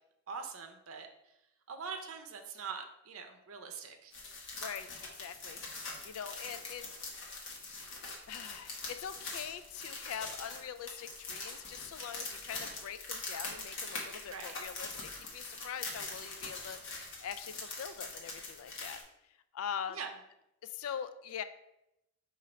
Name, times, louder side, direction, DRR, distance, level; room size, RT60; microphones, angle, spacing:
voice 1, 0.3-1.1 1.7-4.1 14.3-14.5 19.9-20.1, right 5 dB, 70° right, 5 dB, 0.6 m, -43 dB
sound 1, 4.1-19.0, left 3 dB, 55° left, 1.0 m, -43 dB
voice 2, 5.2-5.6 6.0-6.9 8.3-19.0 19.5-20.0 20.6-21.4, left 8 dB, 75° left, 11 dB, 0.3 m, -43 dB
5.1 x 2.5 x 4.2 m, 0.85 s
head